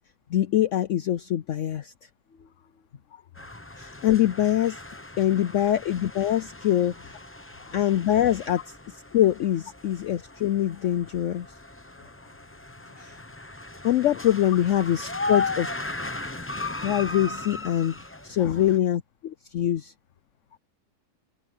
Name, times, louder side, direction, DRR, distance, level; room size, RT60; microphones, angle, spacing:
voice 1, 0.3-1.9 3.8-4.8 5.2-7.2 7.7-8.6 9.1-11.5 13.0-13.1 13.8-15.7 16.8-18.0 18.2-19.9, left 12 dB, 80° left, 0.6 m, -24 dB
voice 2, 3.1-3.5 5.3-5.4 7.6-8.0 12.0-12.3 12.9-13.0 18.4-18.8, left 7 dB, 50° left, 1.3 m, -44 dB
sound 1, 3.4-18.8, left 3 dB, 10° left, 0.6 m, -37 dB
omnidirectional pair, 1.8 m